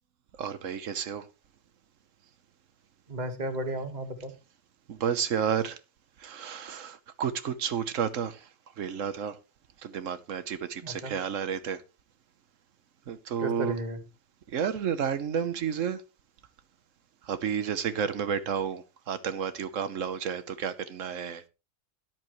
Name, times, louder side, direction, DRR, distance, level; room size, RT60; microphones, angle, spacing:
voice 1, 0.4-1.3 4.9-5.8 6.2-8.5 8.8-9.4 9.8-11.8 13.1-13.8 14.5-16.0 17.2-21.4, right 7 dB, 90° right, 1.3 m, -31 dB
voice 2, 3.1-4.3 10.8-11.1 13.4-14.0, right 1 dB, 35° right, 1.7 m, -34 dB
13.5 x 10.5 x 3.1 m
omnidirectional pair, 1.3 m